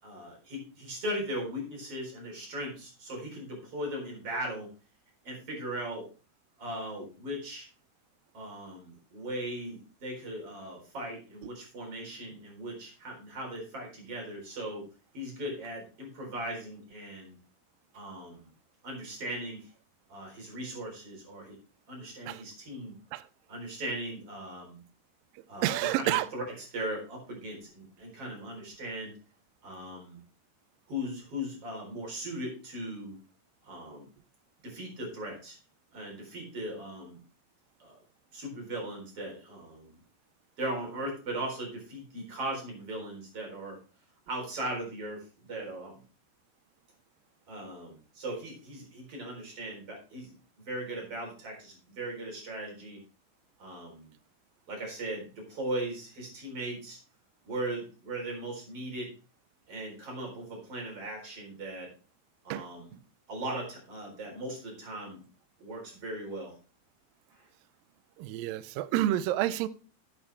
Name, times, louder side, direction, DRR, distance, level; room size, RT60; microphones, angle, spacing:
voice 1, 0.0-4.7 5.2-6.1 6.6-7.7 8.3-14.8 15.1-17.4 17.9-18.5 18.8-19.7 20.1-21.6 21.9-22.9 23.5-24.8 25.5-29.1 29.6-30.2 30.9-33.2 33.6-34.1 34.6-35.6 35.9-37.2 37.8-38.0 38.3-40.0 40.6-43.8 44.3-46.0 47.5-50.3 50.6-53.0 53.6-54.1 54.7-57.0 57.5-59.1 59.7-61.9 62.4-63.0 63.3-65.2 65.6-66.5, right 1 dB, 35° right, 4.9 m, -38 dB
voice 2, 25.6-26.3 62.5-62.6 68.2-69.7, right 14 dB, 85° right, 2.0 m, -29 dB
11.5 x 8.3 x 3.4 m
omnidirectional pair, 4.7 m